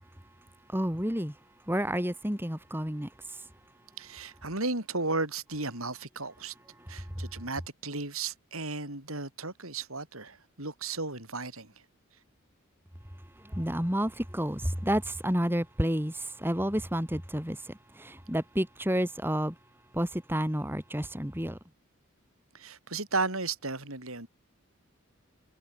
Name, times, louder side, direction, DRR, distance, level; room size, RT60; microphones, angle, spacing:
voice 1, 0.7-1.4 1.7-3.5 6.8-7.3 13.4-19.6 19.9-21.6, equal, 10° right, 3.1 m, -30 dB
voice 2, 4.0-6.5 6.9-11.7 22.5-24.3, right 3 dB, 80° right, 7.8 m, -34 dB
head